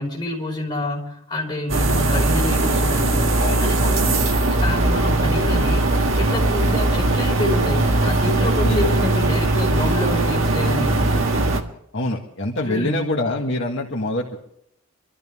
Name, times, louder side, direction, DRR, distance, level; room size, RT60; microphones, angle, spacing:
voice 1, 0.0-11.0 12.6-13.1, left 1 dB, 20° left, -3 dB, 5.1 m, -28 dB
sound 1, 1.7-11.6, right 2 dB, 60° right, 1.6 m, -19 dB
voice 2, 11.9-14.4, left 2 dB, 55° left, -1 dB, 1.8 m, -25 dB
26.0 x 13.5 x 3.6 m, 0.72 s
head